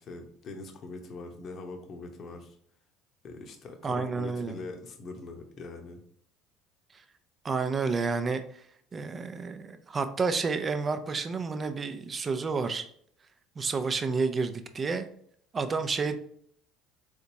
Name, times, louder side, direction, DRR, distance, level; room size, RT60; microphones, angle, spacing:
voice 1, 0.0-2.6 3.2-6.0, left 3 dB, 50° left, 4 dB, 0.9 m, -42 dB
voice 2, 3.8-4.6 7.4-8.4 8.9-12.9 13.6-15.0 15.5-16.2, right 4 dB, 30° right, 9 dB, 0.5 m, -30 dB
3.9 x 3.4 x 2.7 m, 0.62 s
hypercardioid pair, 70°, 0 cm